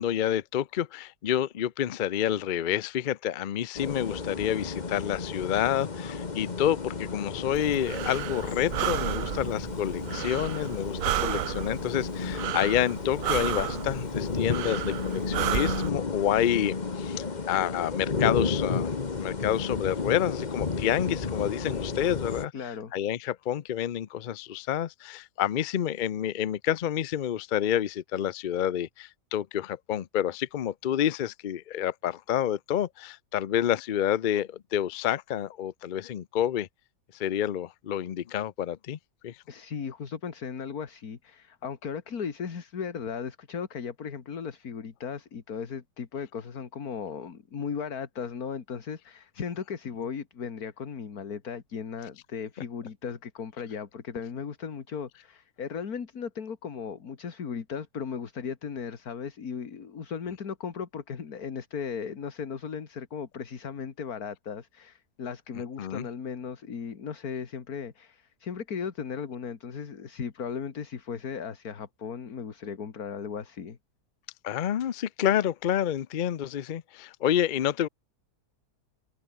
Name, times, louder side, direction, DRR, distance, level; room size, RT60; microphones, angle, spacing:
voice 1, 0.0-22.5 22.9-36.7 37.1-39.0 39.2-39.4 65.8-66.0 74.4-77.9, left 10 dB, 85° left, 0.4 m, -28 dB
sound 1, 3.7-22.4, left 4 dB, 30° left, 1.3 m, -33 dB
Breathing, 7.5-15.9, right 13 dB, 65° right, 1.0 m, -33 dB
voice 2, 22.5-22.9 39.5-73.8, left 6 dB, 65° left, 2.3 m, -36 dB
omnidirectional pair, 1.7 m